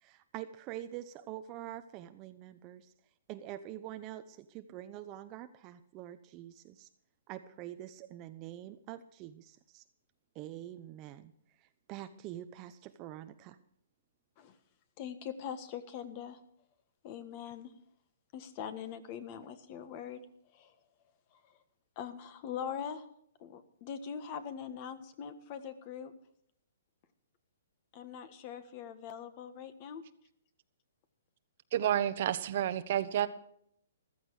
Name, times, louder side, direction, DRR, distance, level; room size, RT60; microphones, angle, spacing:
voice 1, 0.0-2.9 3.3-6.9 7.3-9.8 10.3-11.3 11.6-13.6, right 13 dB, 25° right, 9 dB, 0.7 m, -45 dB
voice 2, 15.0-16.4 17.0-17.7 18.3-20.2 20.5-20.7 21.3-21.6 21.9-23.1 23.4-26.1 27.9-30.0, left 8 dB, 35° left, 12 dB, 1.5 m, -42 dB
voice 3, 31.7-33.3, right 11 dB, 50° right, 12 dB, 1.1 m, -30 dB
15.0 x 14.0 x 4.8 m, 0.69 s
hypercardioid pair, 155°, 0 cm